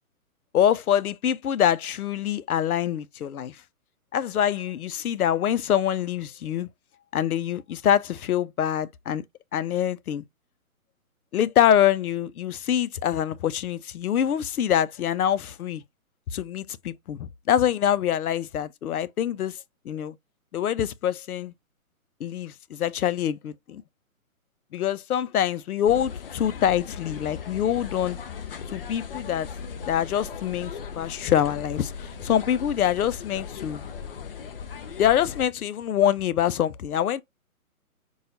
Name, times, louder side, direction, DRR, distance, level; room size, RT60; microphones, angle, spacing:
voice 1, 0.5-3.6 4.1-6.7 7.1-9.2 9.5-10.2 11.3-15.8 16.3-19.6 19.9-20.2 20.5-21.5 22.2-23.8 24.7-28.2 28.7-29.5 29.9-33.8 35.0-37.2, left 10 dB, 80° left, 0.6 m, -25 dB
sound 1, 25.9-35.5, left 6 dB, 40° left, 0.5 m, -38 dB
6.2 x 2.3 x 2.6 m
hypercardioid pair, 150°, 44 cm